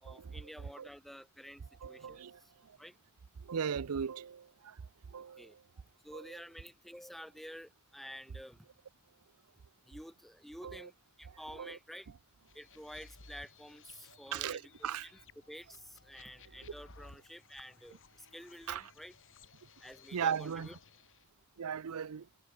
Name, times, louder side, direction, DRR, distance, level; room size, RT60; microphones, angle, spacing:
voice 1, 0.0-2.5 2.8-2.9 5.4-5.6 6.0-8.7 9.9-10.9 11.2-12.1 12.5-15.2 15.5-19.2 19.8-20.8, equal, ahead, 1.1 m, -50 dB
voice 2, 1.8-2.3 3.5-4.4 5.1-5.4 6.1-6.2 10.6-10.8 11.6-11.8 14.3-15.1 18.7-18.8 20.1-20.7 21.6-22.2, right 7 dB, 70° right, 0.5 m, -36 dB
sound 1, 12.5-21.3, left 3 dB, 60° left, 7.9 m, -58 dB
head